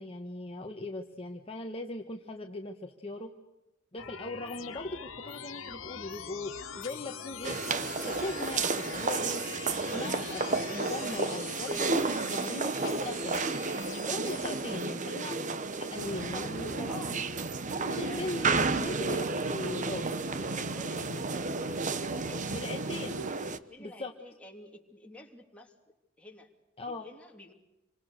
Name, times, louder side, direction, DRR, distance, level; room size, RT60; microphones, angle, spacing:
voice 1, 0.0-3.3 3.9-7.6 7.8-9.4 9.9-13.7 14.0-15.4 15.8-17.2 17.8-20.2 22.5-23.1 23.8-24.1 26.8-27.1, left 2 dB, 30° left, 3 dB, 1.4 m, -39 dB
sound 1, 4.0-14.9, left 7 dB, 75° left, 1.9 m, -44 dB
sound 2, 7.4-23.6, right 4 dB, 40° right, 1.1 m, -32 dB
voice 2, 14.3-14.7 16.1-17.3 18.0-19.3 20.3-22.6 23.7-25.7 26.2-26.5 26.8-27.5, left 1 dB, 5° left, 0 dB, 3.2 m, -49 dB
sound 3, 16.0-23.3, right 1 dB, 80° right, 1.5 m, -41 dB
27.5 x 25.5 x 6.7 m, 1.0 s
head